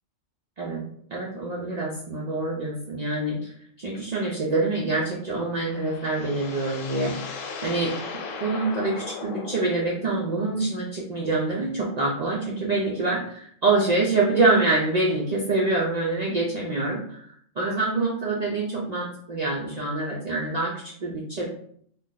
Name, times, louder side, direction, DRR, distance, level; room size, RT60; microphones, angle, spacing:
voice 1, 1.1-7.9 8.4-21.5, right 2 dB, 75° right, -4 dB, 0.3 m, -26 dB
sound 1, 5.3-10.5, left 4 dB, 80° left, 1.0 m, -37 dB
2.5 x 2.2 x 3.7 m, 0.63 s
omnidirectional pair, 1.4 m